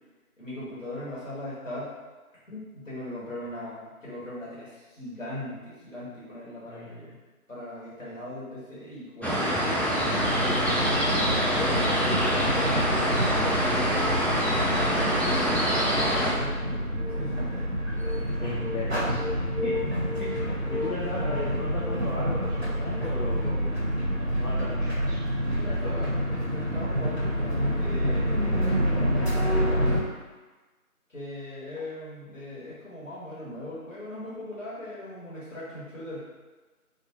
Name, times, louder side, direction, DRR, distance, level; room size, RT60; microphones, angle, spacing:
voice 1, 0.4-1.9 2.5-7.2 7.5-9.7 11.7-11.9 12.2-15.5 15.9-17.7 25.4-28.6 29.1-30.0 31.1-36.2, left 1 dB, 55° left, -9 dB, 1.3 m, -39 dB
voice 2, 6.7-7.2 8.0-8.1 11.5-12.5 18.4-19.8 20.2-20.4 20.7-23.7 24.2-25.2 25.7-26.1, left 2 dB, 75° left, -6 dB, 0.7 m, -36 dB
sound 1, 9.2-16.3, equal, 5° left, 0.3 m, -25 dB
sound 2, 10.1-30.0, equal, 50° right, 0.5 m, -28 dB
2.8 x 2.2 x 2.7 m, 1.3 s
figure-of-eight pair, 175°, 45 cm